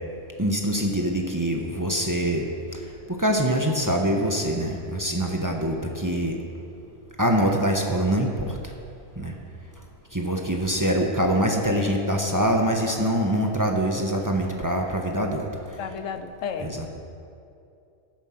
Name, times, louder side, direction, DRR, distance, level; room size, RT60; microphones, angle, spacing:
voice 1, 0.4-2.5 3.1-6.4 7.2-8.6 9.2-9.3 10.1-15.4 16.6-16.9, equal, 15° right, 1 dB, 1.0 m, -24 dB
voice 2, 15.8-16.7, left 6 dB, 75° left, 8 dB, 1.1 m, -32 dB
15.0 x 9.0 x 5.9 m, 2.6 s
omnidirectional pair, 1.3 m